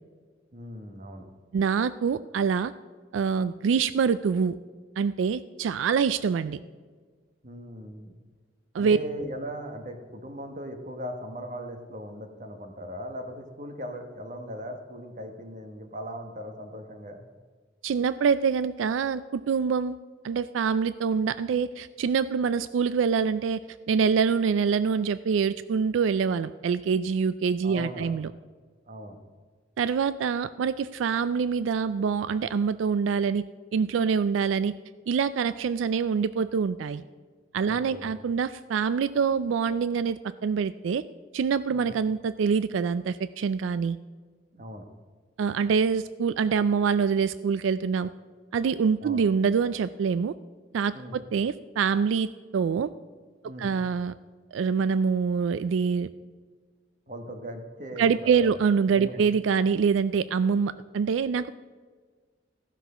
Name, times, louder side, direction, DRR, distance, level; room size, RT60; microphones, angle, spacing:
voice 1, 0.5-1.3 7.4-8.1 8.7-17.2 27.6-28.1 28.9-29.2 37.7-38.1 41.7-41.9 44.5-44.9 49.0-49.2 50.9-51.2 53.4-53.7 57.1-58.5 58.9-59.2, equal, 40° right, 6 dB, 1.2 m, -39 dB
voice 2, 1.5-2.7 3.1-4.5 5.0-6.6 8.7-9.0 17.8-20.0 20.2-23.6 23.9-28.3 29.8-33.4 33.7-34.7 35.1-37.0 37.5-41.0 41.3-44.0 45.4-48.1 48.5-50.3 50.7-52.9 53.6-54.1 54.5-56.1 58.0-61.5, right 6 dB, 90° right, 15 dB, 0.3 m, -25 dB
14.5 x 6.1 x 5.6 m, 1.5 s
head